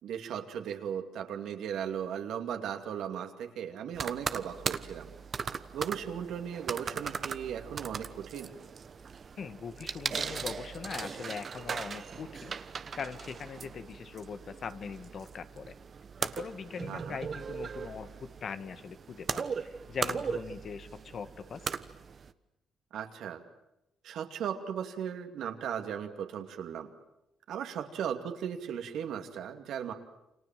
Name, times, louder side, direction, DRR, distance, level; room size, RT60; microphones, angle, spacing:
voice 1, 0.0-5.1 5.7-8.5 16.9-17.2 22.9-23.4 24.0-26.9 27.5-29.9, right 8 dB, 75° right, 5 dB, 2.6 m, -37 dB
sound 1, 3.9-22.3, right 6 dB, 45° right, 1.2 m, -38 dB
voice 2, 9.4-12.5 12.9-15.7 16.2-21.7, left 6 dB, 55° left, 10 dB, 1.7 m, -41 dB
29.0 x 26.0 x 7.6 m, 0.89 s
cardioid pair, 90°, 0 cm